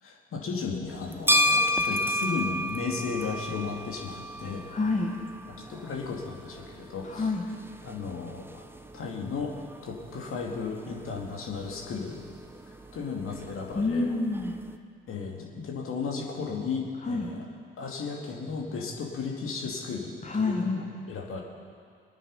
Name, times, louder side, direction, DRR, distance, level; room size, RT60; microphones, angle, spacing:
voice 1, 0.0-4.7 5.7-7.3 7.8-8.6 8.9-9.5 9.8-12.2 12.7-14.1 15.1-17.4 17.8-21.4, left 5 dB, 45° left, -1 dB, 2.6 m, -34 dB
sound 1, 0.9-14.7, left 1 dB, 10° right, 0.9 m, -33 dB
voice 2, 4.7-5.1 7.0-7.4 13.7-14.5 17.0-17.3 20.2-20.7, left 3 dB, 25° left, -1 dB, 1.8 m, -27 dB
22.5 x 9.2 x 5.6 m, 2.2 s
figure-of-eight pair, 50°, 30 cm